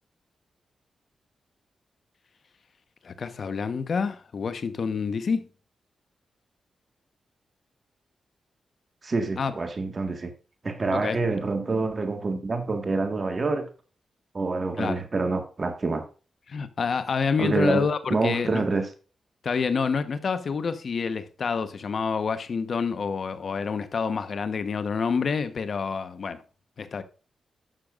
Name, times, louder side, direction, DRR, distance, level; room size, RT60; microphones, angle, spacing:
voice 1, 3.0-5.5 9.4-9.5 10.9-11.2 14.8-15.0 16.5-18.7 19.4-26.4 26.8-27.0, left 5 dB, 65° left, 1.1 m, -28 dB
voice 2, 9.0-10.3 10.6-13.7 14.3-16.0 17.4-18.9, right 3 dB, 45° right, 1.7 m, -27 dB
11.5 x 6.8 x 2.5 m
cardioid pair, 55°, 0 cm